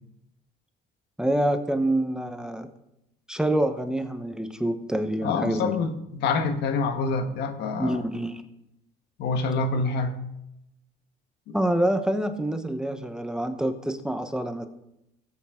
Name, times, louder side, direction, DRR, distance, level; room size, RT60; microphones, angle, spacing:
voice 1, 1.2-2.7 3.3-5.7 7.8-8.4 11.5-14.7, right 1 dB, 5° right, 7 dB, 0.9 m, -26 dB
voice 2, 5.2-8.0 9.2-10.2 11.5-11.6, left 4 dB, 80° left, 7 dB, 1.4 m, -26 dB
16.0 x 8.3 x 3.7 m, 0.84 s
cardioid pair, 110°, 17 cm